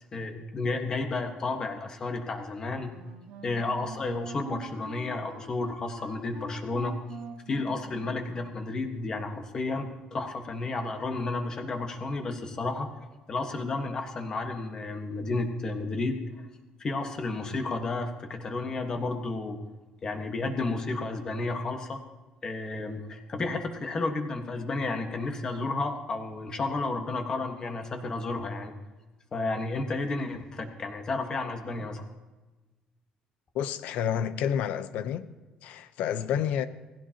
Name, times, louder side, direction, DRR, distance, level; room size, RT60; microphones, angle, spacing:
voice 1, 0.1-2.9 3.4-7.0 7.5-12.9 13.3-16.4 16.8-19.6 20.0-22.0 22.4-28.7 29.3-32.1, left 3 dB, 30° left, 1.5 m, -32 dB
Wind instrument woodwind instrument, 2.9-8.8, right 5 dB, 75° right, 2.0 m, -44 dB
voice 2, 33.5-35.3 35.6-36.7, left 9 dB, 70° left, 0.8 m, -29 dB
18.5 x 16.0 x 2.9 m
cardioid pair, 160°, 3 cm